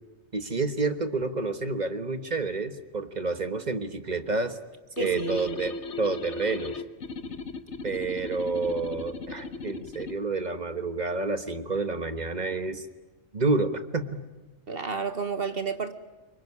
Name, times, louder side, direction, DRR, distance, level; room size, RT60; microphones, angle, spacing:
voice 1, 0.3-4.6 5.0-6.8 7.8-12.9 13.3-14.2, right 3 dB, 40° right, 10 dB, 1.5 m, -29 dB
sound 1, 5.0-10.2, left 4 dB, 80° left, 1.4 m, -37 dB
voice 2, 5.0-5.6 14.7-15.9, right 5 dB, 55° right, 10 dB, 1.5 m, -31 dB
25.5 x 23.0 x 9.7 m, 1.2 s
omnidirectional pair, 1.2 m